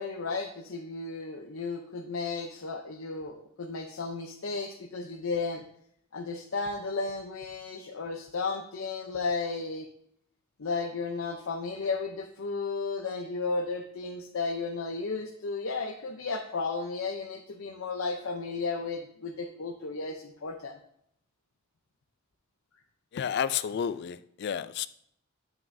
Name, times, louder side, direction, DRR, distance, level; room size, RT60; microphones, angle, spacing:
voice 1, 0.0-5.6 6.1-9.9 10.6-20.8, left 4 dB, 85° left, 2 dB, 0.6 m, -34 dB
voice 2, 23.1-24.9, left 8 dB, 55° left, 15 dB, 0.3 m, -31 dB
9.2 x 5.9 x 2.6 m, 0.70 s
head